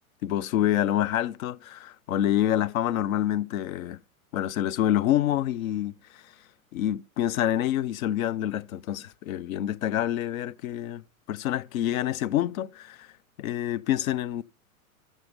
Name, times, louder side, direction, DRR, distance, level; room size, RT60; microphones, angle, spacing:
voice 1, 0.2-4.0 4.3-5.9 6.7-11.0 11.3-13.1 13.4-14.4, left 12 dB, 70° left, 0.6 m, -27 dB
12.0 x 6.3 x 5.1 m
hypercardioid pair, 120°, 43 cm